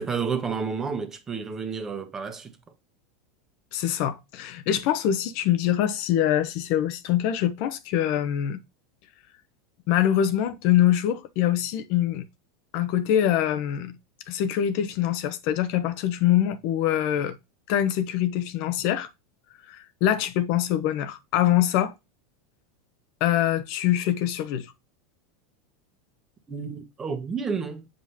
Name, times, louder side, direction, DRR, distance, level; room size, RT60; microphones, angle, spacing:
voice 1, 0.0-2.5 26.5-27.9, right 5 dB, 20° right, 1.3 m, -30 dB
voice 2, 3.7-8.6 9.9-12.2 12.7-13.9 14.3-17.4 17.7-19.1 19.7-21.9 23.2-24.7, left 11 dB, 60° left, 0.8 m, -24 dB
7.6 x 5.1 x 2.7 m
supercardioid pair, 120°, 2 cm